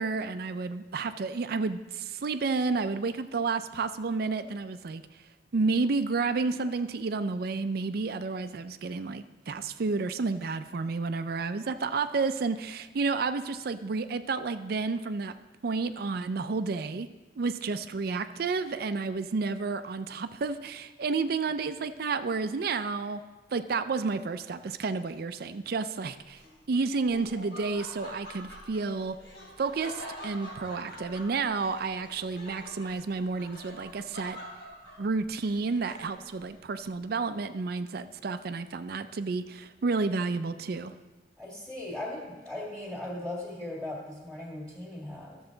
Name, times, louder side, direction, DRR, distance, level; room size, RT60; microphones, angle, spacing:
voice 1, 0.0-5.0 5.5-15.3 15.6-17.1 17.4-23.2 23.5-26.4 26.7-29.2 29.6-34.4 35.0-40.9, right 4 dB, 55° right, 11 dB, 0.4 m, -31 dB
Laughter, 26.3-36.4, left 1 dB, 80° left, 2.9 m, -46 dB
voice 2, 41.4-45.4, left 1 dB, 5° left, -3 dB, 1.9 m, -38 dB
13.5 x 6.9 x 3.9 m, 1.2 s
head